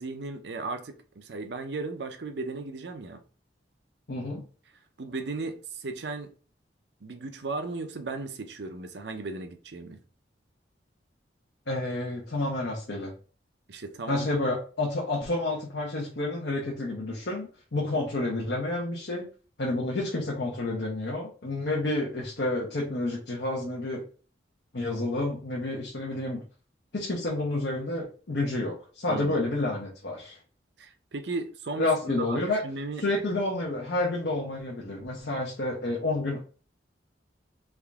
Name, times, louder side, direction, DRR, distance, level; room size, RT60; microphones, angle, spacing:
voice 1, 0.0-3.2 5.0-6.3 7.0-10.0 13.7-14.4 29.1-29.4 30.8-33.0, right 3 dB, 65° right, 0.6 m, -36 dB
voice 2, 4.1-4.4 11.7-13.1 14.1-19.3 19.6-24.0 24.7-26.4 26.9-30.4 31.8-32.6 33.0-36.4, left 2 dB, 70° left, 1.0 m, -29 dB
3.6 x 2.6 x 3.5 m
head